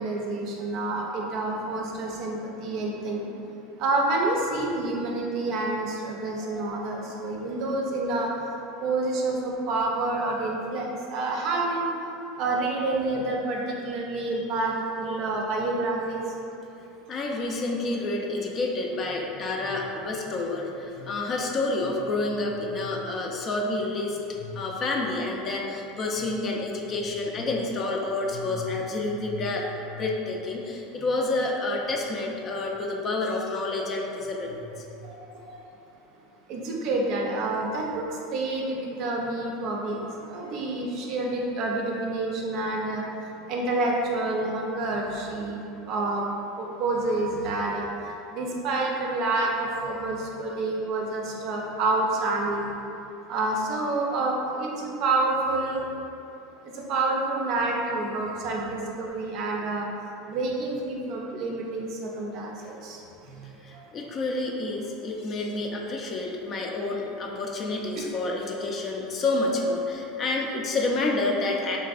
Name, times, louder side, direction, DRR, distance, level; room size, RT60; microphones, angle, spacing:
voice 1, 0.0-3.2 3.8-8.3 8.8-11.9 12.4-16.2 35.0-35.6 36.5-38.0 38.3-40.0 40.3-43.0 43.5-45.6 45.8-46.2 46.6-47.9 48.3-52.7 53.3-55.8 56.9-59.9 60.3-63.0, right 2 dB, 55° right, -1 dB, 0.5 m, -28 dB
voice 2, 17.1-35.0 63.6-71.8, left 2 dB, 35° left, -1 dB, 0.4 m, -29 dB
3.1 x 2.6 x 2.4 m, 2.8 s
supercardioid pair, 105°, 0 cm